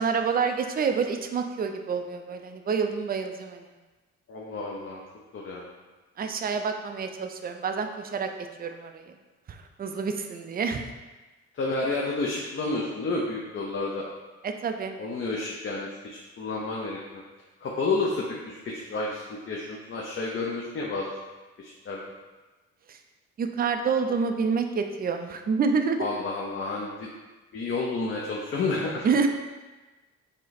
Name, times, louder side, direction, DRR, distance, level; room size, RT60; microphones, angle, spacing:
voice 1, 0.0-3.7 6.2-8.3 8.6-9.1 9.5-10.9 14.4-15.0 22.9-23.0 23.4-26.1 29.0-29.3, right 5 dB, 30° right, 6 dB, 0.4 m, -28 dB
voice 2, 4.3-5.0 5.3-5.7 11.5-14.1 15.0-17.2 17.6-21.1 21.6-22.1 26.0-27.1 27.5-29.1, left 3 dB, 40° left, -2 dB, 0.6 m, -30 dB
5.0 x 2.1 x 4.0 m, 1.2 s
cardioid pair, 90°, 30 cm